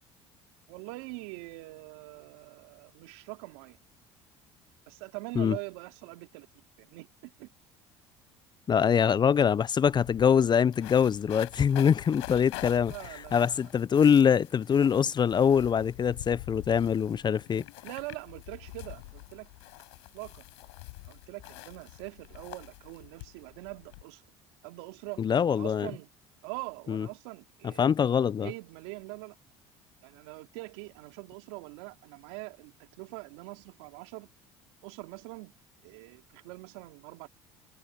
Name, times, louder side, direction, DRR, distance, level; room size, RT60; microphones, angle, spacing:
voice 1, 0.7-3.8 4.9-6.5 6.8-7.5 12.9-13.7 17.8-19.5 20.1-20.4 21.0-24.2 24.6-25.2 25.5-26.1 26.4-27.8 28.4-29.4 30.0-34.3 34.8-35.5 35.8-37.3, right 25 dB, 80° right, 3.7 m, -43 dB
voice 2, 8.7-12.9 13.3-17.6 25.2-25.9 26.9-27.1 27.8-28.5, left 7 dB, 35° left, 0.5 m, -24 dB
sound 1, 9.6-24.0, left 24 dB, 80° left, 7.5 m, -46 dB
hypercardioid pair, 75°, 14 cm